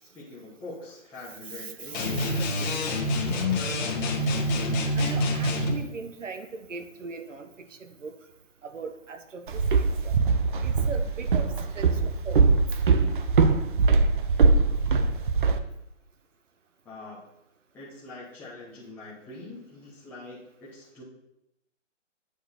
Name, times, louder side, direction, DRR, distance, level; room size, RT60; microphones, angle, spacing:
voice 1, 0.0-4.1 16.8-17.3 17.7-21.0, left 2 dB, 5° left, -9 dB, 0.8 m, -44 dB
voice 2, 1.5-2.6 4.2-4.6 4.9-8.2 8.6-10.1 10.6-12.6, right 4 dB, 75° right, 8 dB, 1.2 m, -40 dB
sound 1, 1.9-5.8, left 1 dB, 35° left, 1.7 m, -26 dB
Walk footsteps, 9.5-15.6, right 4 dB, 40° right, 0.7 m, -22 dB
8.9 x 6.4 x 4.2 m, 0.84 s
hypercardioid pair, 150°, 38 cm